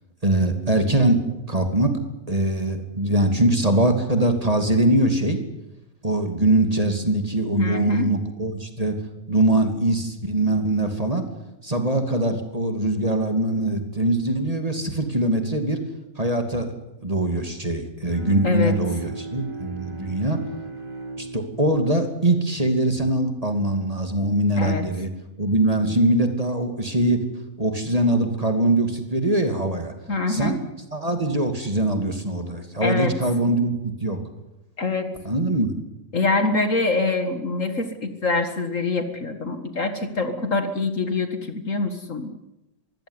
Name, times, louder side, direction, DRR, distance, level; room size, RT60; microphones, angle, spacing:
voice 1, 0.2-2.0 2.3-5.4 6.0-8.9 9.3-11.3 11.6-15.8 16.2-16.7 17.0-20.4 21.2-25.1 25.4-27.2 27.6-29.9 30.3-30.6 30.9-34.2 35.2-35.7, right 1 dB, 20° right, 6 dB, 2.6 m, -22 dB
voice 2, 7.6-8.1 18.4-18.8 24.6-24.8 30.1-30.6 32.8-33.2 34.8-35.1 36.1-42.3, left 3 dB, 45° left, 8 dB, 2.1 m, -24 dB
Bowed string instrument, 18.1-23.5, right 2 dB, 90° right, 4.3 m, -39 dB
24.0 x 16.0 x 9.8 m, 0.93 s
omnidirectional pair, 1.9 m